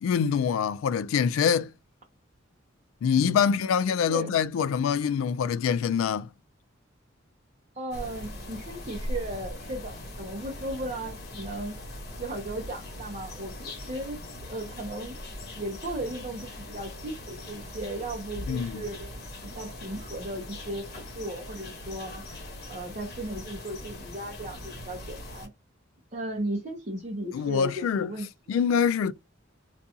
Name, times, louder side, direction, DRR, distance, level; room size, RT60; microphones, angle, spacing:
voice 1, 0.0-1.7 3.0-6.3 18.5-18.8 27.3-28.1 28.5-29.1, left 7 dB, 90° left, 0.3 m, -25 dB
voice 2, 3.2-3.5 4.1-4.3 7.8-11.8 12.2-15.2 15.6-19.1 19.4-22.4 22.7-25.5 26.1-28.6, right 1 dB, 35° right, 0.6 m, -36 dB
sound 1, 7.9-25.5, left 1 dB, 50° left, 1.0 m, -40 dB
2.5 x 2.3 x 2.7 m
head